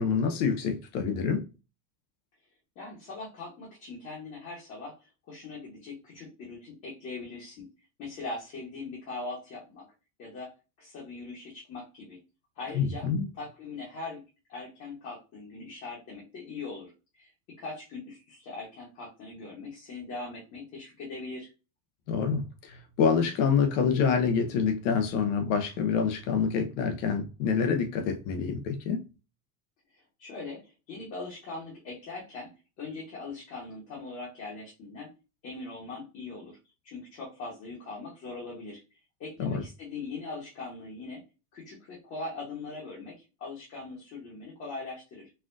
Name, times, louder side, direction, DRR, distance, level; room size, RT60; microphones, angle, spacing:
voice 1, 0.0-1.4 12.7-13.3 22.1-29.0 39.4-39.6, left 6 dB, 50° left, 0.8 m, -27 dB
voice 2, 2.8-7.7 8.0-9.8 10.2-10.5 10.8-12.2 12.6-13.1 13.4-14.2 14.5-16.9 17.2-17.3 17.6-21.5 30.2-30.6 30.9-35.1 35.4-36.6 36.8-38.8 39.2-41.2 41.5-45.3, left 3 dB, 30° left, 1.2 m, -41 dB
4.2 x 2.4 x 2.6 m
supercardioid pair, 160°, 48 cm